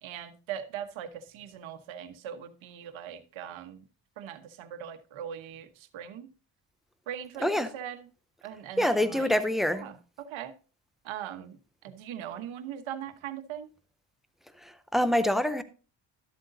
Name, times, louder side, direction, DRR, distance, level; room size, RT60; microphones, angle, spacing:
voice 1, 0.0-3.9 4.2-6.3 7.1-8.1 8.4-9.3 9.7-10.5 11.0-13.7, right 9 dB, 85° right, 1.2 m, -40 dB
voice 2, 8.8-9.8 14.6-15.6, left 1 dB, ahead, 0.5 m, -26 dB
13.0 x 7.8 x 2.7 m
cardioid pair, 145°, 46 cm